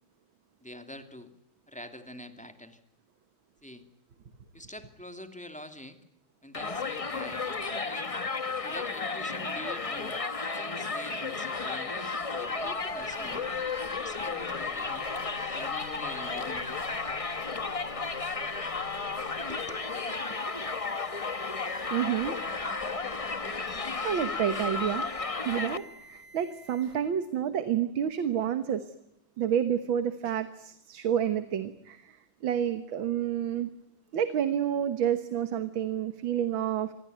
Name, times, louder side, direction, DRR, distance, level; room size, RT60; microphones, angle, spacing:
voice 1, 0.6-1.3 1.7-2.8 3.6-3.8 4.5-6.0 6.4-8.3 8.6-10.2 10.6-13.5 14.0-15.1 15.5-16.7 19.5-19.9, left 1 dB, 5° left, 7 dB, 2.4 m, -45 dB
Crowd, 6.5-25.8, left 4 dB, 25° left, 0.9 m, -33 dB
sound 1, 7.3-27.0, equal, 40° right, 7.7 m, -52 dB
sound 2, 11.7-27.7, left 4 dB, 70° left, 3.8 m, -55 dB
voice 2, 21.9-22.4 24.0-25.0 25.5-28.9 29.4-32.2 32.4-33.7 34.1-36.9, right 9 dB, 85° right, 11 dB, 2.0 m, -29 dB
26.5 x 22.0 x 9.3 m, 0.79 s
omnidirectional pair, 2.1 m